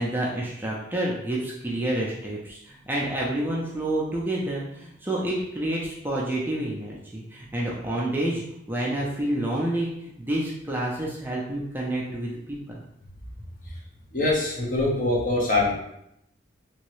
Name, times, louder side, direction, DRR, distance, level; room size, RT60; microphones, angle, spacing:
voice 1, 0.0-12.4 12.7-12.8, right 1 dB, 10° right, -4 dB, 0.4 m, -29 dB
voice 2, 14.1-15.7, left 2 dB, 45° left, -4 dB, 0.9 m, -23 dB
3.0 x 2.7 x 3.1 m, 0.78 s
head